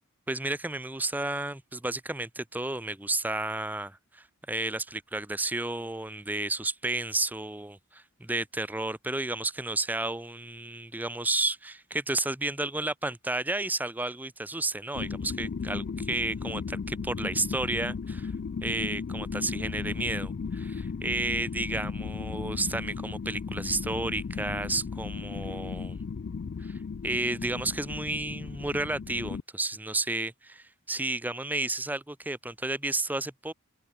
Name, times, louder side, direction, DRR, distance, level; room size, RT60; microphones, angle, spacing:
voice 1, 0.3-18.3 18.6-26.0 26.6-26.7 27.0-33.5, right 2 dB, 10° right, 0.7 m, -32 dB
sound 1, 14.9-29.4, left 5 dB, 50° left, 0.4 m, -35 dB
head